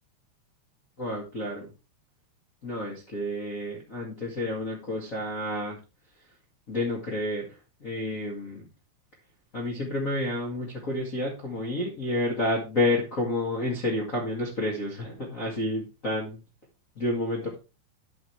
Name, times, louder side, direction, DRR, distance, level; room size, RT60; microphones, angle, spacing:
voice 1, 1.0-1.7 2.6-5.8 6.7-7.5 7.8-8.7 9.5-16.4 17.0-17.5, left 1 dB, 80° left, -3 dB, 0.7 m, -30 dB
10.5 x 6.8 x 3.3 m, 0.29 s
omnidirectional pair, 5.2 m